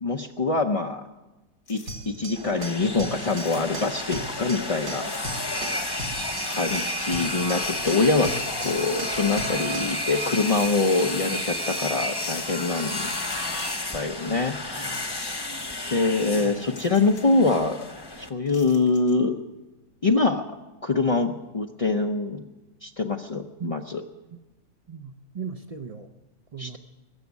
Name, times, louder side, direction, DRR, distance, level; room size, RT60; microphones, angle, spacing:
voice 1, 0.0-1.0 1.7-1.8 2.1-5.4 6.5-13.1 13.9-15.4 15.9-17.8 18.2-19.4 20.0-20.4 20.8-22.4 22.8-24.0 26.6-26.8, left 3 dB, 60° left, 3 dB, 0.3 m, -24 dB
sound 1, 1.7-2.3 3.2-4.2 5.0-5.7 6.4-7.1 8.2-9.3 10.4-11.5 12.1-12.2 13.1-14.0 14.7-15.6 15.9-16.0 16.7-17.4 18.4-19.2, left 4 dB, 90° left, 2.8 m, -49 dB
sound 2, 1.9-10.0, right 1 dB, 70° right, 2.4 m, -38 dB
sound 3, 2.4-18.3, left 1 dB, 20° left, 0.8 m, -31 dB
voice 2, 24.9-26.1 26.5-26.8, right 6 dB, 55° right, 7 dB, 0.4 m, -37 dB
21.0 x 7.1 x 9.4 m, 1.1 s
omnidirectional pair, 1.7 m